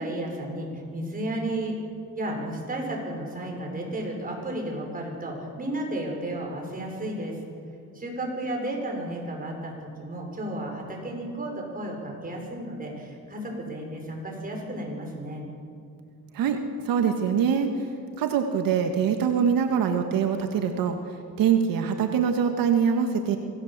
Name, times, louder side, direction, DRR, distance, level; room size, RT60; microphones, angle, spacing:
voice 1, 0.0-1.8 2.1-7.4 7.9-15.4, right 1 dB, 25° right, 0 dB, 6.4 m, -33 dB
voice 2, 16.8-17.7 18.2-21.0 21.4-23.4, right 7 dB, 85° right, 5 dB, 1.8 m, -23 dB
25.0 x 18.0 x 7.5 m, 2.4 s
cardioid pair, 125°, 33 cm